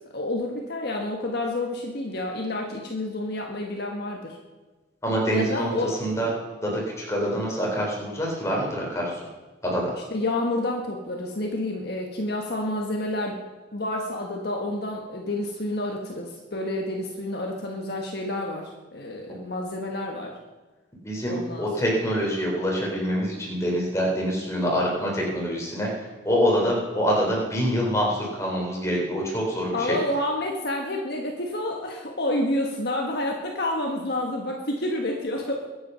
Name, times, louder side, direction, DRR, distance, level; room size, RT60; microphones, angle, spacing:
voice 1, 0.1-4.4 5.3-6.0 10.1-13.4 13.7-20.3 21.3-22.0 29.7-35.6, left 1 dB, 55° left, 0 dB, 1.5 m, -29 dB
voice 2, 5.0-6.3 6.6-9.1 9.6-9.9 21.0-25.9 26.2-30.0, equal, 15° left, -2 dB, 4.0 m, -25 dB
22.0 x 8.8 x 5.6 m, 1.2 s
head